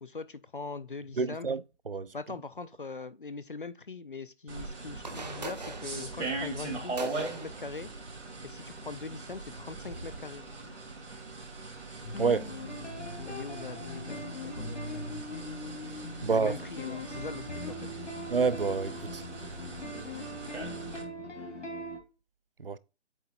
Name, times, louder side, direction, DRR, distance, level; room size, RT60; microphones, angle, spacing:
voice 1, 0.0-1.5 2.1-7.9 8.4-10.5 13.2-15.1 16.2-17.9, left 4 dB, 50° left, 0.4 m, -42 dB
voice 2, 1.2-1.6 1.9-2.1 12.2-12.5 16.2-16.6 18.3-19.2 22.6-22.8, right 5 dB, 50° right, 0.4 m, -28 dB
sound 1, 4.5-21.0, right 3 dB, 75° right, 3.2 m, -41 dB
sound 2, 4.9-10.2, right 3 dB, 35° right, 0.8 m, -44 dB
sound 3, 12.0-22.0, left 1 dB, 85° left, 2.5 m, -40 dB
8.1 x 3.2 x 4.2 m
hypercardioid pair, 175°, 36 cm